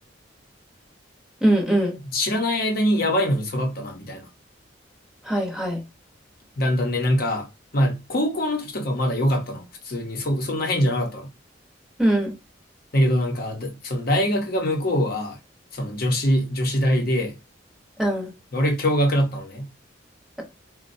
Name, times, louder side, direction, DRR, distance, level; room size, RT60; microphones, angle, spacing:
voice 1, 1.4-2.0 5.2-5.8 12.0-12.3 18.0-18.3, right 1 dB, 5° right, 0.9 m, -21 dB
voice 2, 2.1-4.3 6.6-11.3 12.9-15.4 15.7-17.4 18.5-19.7, equal, 55° left, 0.8 m, -23 dB
4.1 x 2.2 x 2.6 m
head